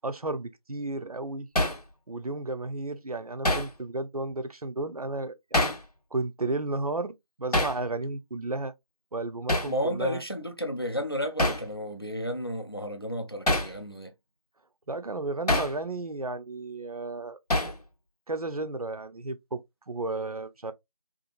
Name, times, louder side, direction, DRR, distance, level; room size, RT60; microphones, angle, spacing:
voice 1, 0.0-1.5 2.1-5.7 6.1-8.7 9.1-10.2 14.9-17.4 18.3-20.7, right 2 dB, 70° right, 0.5 m, -33 dB
Hammer, 1.6-1.8 3.4-3.7 5.5-5.8 7.5-7.8 9.5-9.7 11.4-11.7 13.5-13.7 15.5-15.7 17.5-17.8, left 1 dB, 80° left, 0.9 m, -25 dB
voice 2, 9.7-14.1, equal, 40° left, 0.4 m, -32 dB
2.7 x 2.4 x 2.4 m
figure-of-eight pair, 180°, 20 cm